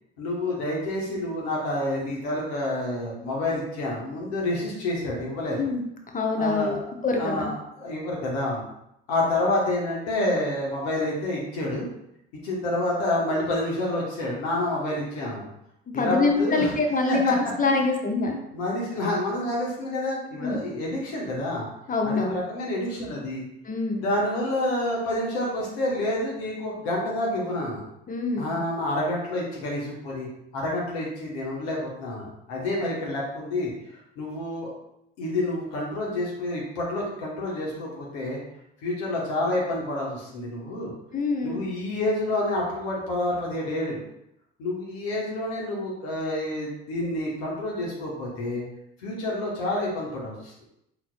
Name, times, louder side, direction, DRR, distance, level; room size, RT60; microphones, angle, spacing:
voice 1, 0.2-5.6 6.3-6.8 7.1-8.6 9.1-11.9 12.4-15.5 15.9-16.7 17.1-17.3 18.5-21.6 22.0-23.4 24.0-27.8 28.4-30.3 30.5-33.7 34.2-34.7 35.2-38.4 38.8-40.9 41.4-44.0 44.6-48.6 49.0-50.5, left 1 dB, 70° left, -3 dB, 1.2 m, -28 dB
voice 2, 6.1-7.5 15.9-18.4 20.4-20.6 21.9-22.4 23.6-24.1 28.1-28.5 41.1-41.6, left 3 dB, 25° left, 2 dB, 0.9 m, -25 dB
4.4 x 3.9 x 2.2 m, 0.79 s
figure-of-eight pair, 50°, 32 cm